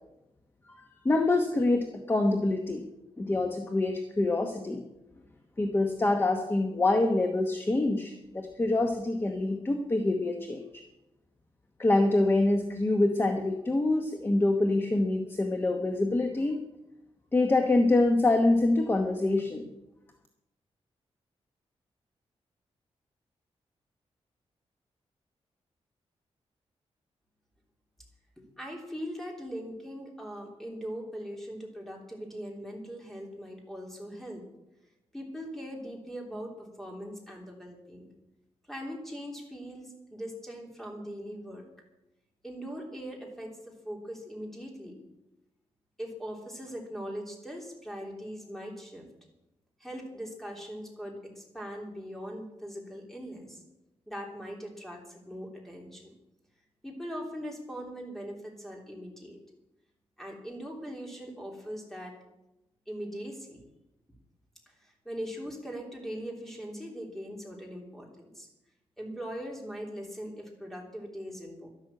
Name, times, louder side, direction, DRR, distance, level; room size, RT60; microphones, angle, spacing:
voice 1, 0.7-2.9 3.2-4.8 5.6-10.6 11.8-16.6 17.3-19.7, left 2 dB, 20° left, 4 dB, 1.1 m, -26 dB
voice 2, 28.4-34.4 35.1-38.1 38.7-41.7 42.4-45.0 46.0-49.1 49.8-53.6 54.1-56.2 56.8-59.4 60.2-62.2 62.9-63.6 64.7-68.5 69.0-71.7, equal, 5° left, 0 dB, 3.3 m, -40 dB
12.0 x 11.5 x 7.7 m, 0.93 s
wide cardioid pair, 155°, 11 cm